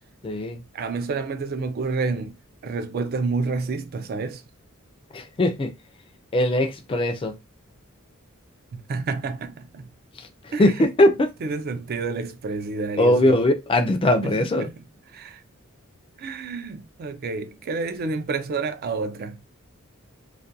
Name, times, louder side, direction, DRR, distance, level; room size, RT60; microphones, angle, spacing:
voice 1, 0.2-0.6 5.1-5.7 6.3-7.3 10.2-10.3 10.6-11.3 13.0-14.7, left 1 dB, 25° left, 0.4 m, -20 dB
voice 2, 0.7-4.4 8.7-9.9 10.5-10.7 11.4-13.4 14.2-14.8 15.1-15.4 16.2-19.4, right 4 dB, 45° right, 0.3 m, -29 dB
2.4 x 2.2 x 2.6 m
head